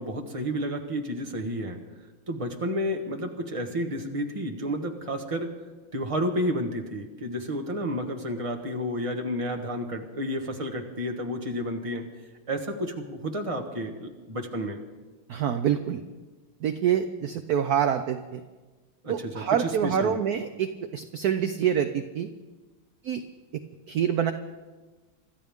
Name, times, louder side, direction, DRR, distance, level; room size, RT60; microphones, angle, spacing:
voice 1, 0.0-1.8 2.3-5.5 5.9-12.0 12.5-14.8 19.0-20.1, equal, 20° right, 3 dB, 1.2 m, -31 dB
voice 2, 15.3-16.0 16.6-18.4 19.1-22.3 23.0-23.2 23.9-24.3, right 9 dB, 65° right, 8 dB, 1.0 m, -26 dB
26.5 x 13.5 x 3.6 m, 1.3 s
omnidirectional pair, 2.2 m